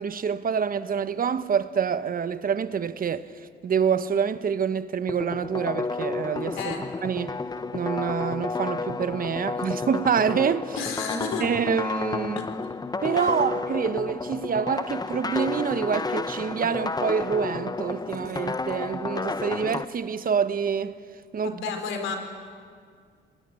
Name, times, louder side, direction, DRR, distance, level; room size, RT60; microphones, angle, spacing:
voice 1, 0.0-3.3 3.6-6.7 7.0-7.4 7.7-10.8 11.4-12.4 13.0-21.0 21.3-21.5, right 7 dB, 45° right, 1.0 m, -26 dB
sound 1, 5.1-19.8, left 3 dB, 20° left, 0.7 m, -31 dB
voice 2, 10.8-11.4 12.4-12.5 13.1-13.3 21.4-22.2, left 5 dB, 90° left, 3.9 m, -31 dB
21.0 x 19.5 x 9.7 m
cardioid pair, 90°, 20 cm